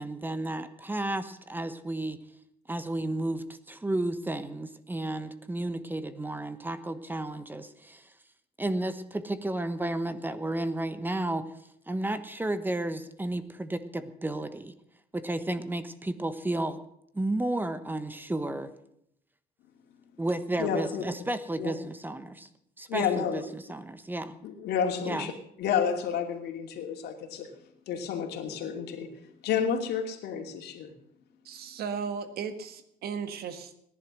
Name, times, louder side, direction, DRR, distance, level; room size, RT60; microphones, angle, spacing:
voice 1, 0.0-2.2 2.7-8.1 8.6-11.5 11.9-14.7 15.1-16.8 17.1-18.7 20.2-22.5 22.8-24.3 25.0-25.3, right 1 dB, 10° right, 12 dB, 1.1 m, -32 dB
voice 2, 20.6-21.0 21.6-21.7 22.9-23.4 24.4-25.3 25.6-27.5 27.9-29.1 29.4-30.9, left 7 dB, 75° left, 3 dB, 2.7 m, -30 dB
voice 3, 31.5-33.8, right 6 dB, 65° right, 10 dB, 1.7 m, -36 dB
18.0 x 11.0 x 6.3 m, 0.75 s
cardioid pair, 110°, 17 cm